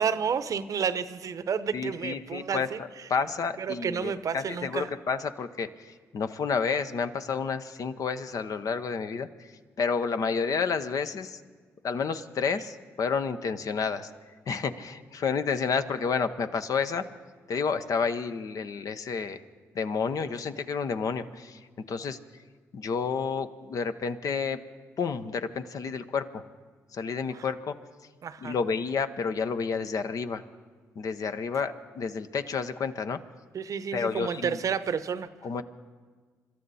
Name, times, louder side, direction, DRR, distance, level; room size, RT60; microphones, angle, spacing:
voice 1, 0.0-3.1 3.6-4.9 27.3-27.4 28.2-28.5 33.5-35.3, right 7 dB, 60° right, 14 dB, 0.8 m, -30 dB
voice 2, 1.7-9.3 9.8-11.4 11.8-14.1 14.5-17.0 17.5-19.4 19.7-21.6 21.9-22.2 22.7-24.6 25.0-26.4 26.9-27.7 28.4-30.4 31.0-33.2 33.9-34.6 35.4-35.6, left 5 dB, 60° left, 10 dB, 0.9 m, -30 dB
26.0 x 13.0 x 4.2 m, 1.5 s
supercardioid pair, 50°, 7 cm